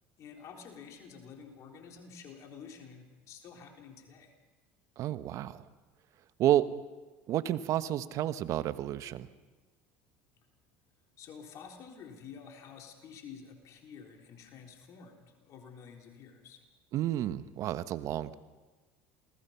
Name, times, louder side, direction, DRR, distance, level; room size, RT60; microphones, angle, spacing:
voice 1, 0.2-4.3 11.2-16.6, left 6 dB, 55° left, 2 dB, 3.8 m, -50 dB
voice 2, 5.0-5.6 6.4-6.7 7.3-9.3 16.9-18.3, right 12 dB, 55° right, 13 dB, 1.1 m, -30 dB
28.0 x 19.5 x 5.8 m, 1.3 s
supercardioid pair, 90°, 6 cm